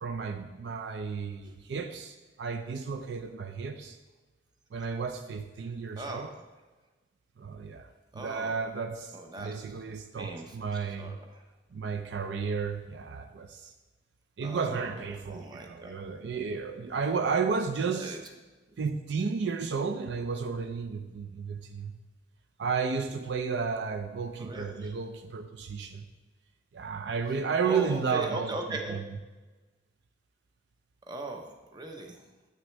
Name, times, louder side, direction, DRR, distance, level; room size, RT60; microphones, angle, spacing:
voice 1, 0.0-4.0 4.7-6.3 7.4-11.2 11.7-13.7 14.4-18.2 18.8-21.9 22.6-26.0 26.7-28.6 28.9-29.0, right 5 dB, 65° right, 7 dB, 0.4 m, -33 dB
voice 2, 6.0-6.3 8.1-8.6 9.1-9.6 10.2-11.4 14.4-14.9 15.3-15.9 18.0-18.2 24.4-24.9 27.6-29.0 31.1-32.2, right 2 dB, 25° right, 3 dB, 0.7 m, -39 dB
8.1 x 6.2 x 3.3 m, 1.2 s
head